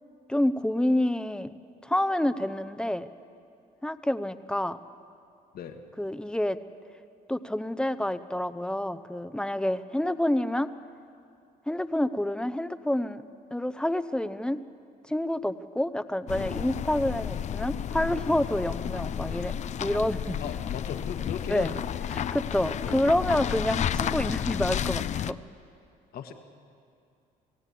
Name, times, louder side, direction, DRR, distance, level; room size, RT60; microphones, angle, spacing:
voice 1, 0.3-1.5 1.8-3.1 3.8-4.8 6.0-6.6 7.3-10.7 11.7-13.2 13.5-14.6 15.1-19.5 19.8-20.4 21.5-21.8 22.1-25.4, left 1 dB, 5° left, 12 dB, 0.7 m, -28 dB
sound 1, 16.3-25.3, left 9 dB, 45° left, 0.5 m, -31 dB
voice 2, 20.4-21.8 22.8-23.0 26.1-26.3, left 8 dB, 60° left, 5 dB, 1.8 m, -37 dB
27.5 x 16.5 x 8.4 m, 2.4 s
cardioid pair, 110°, 17 cm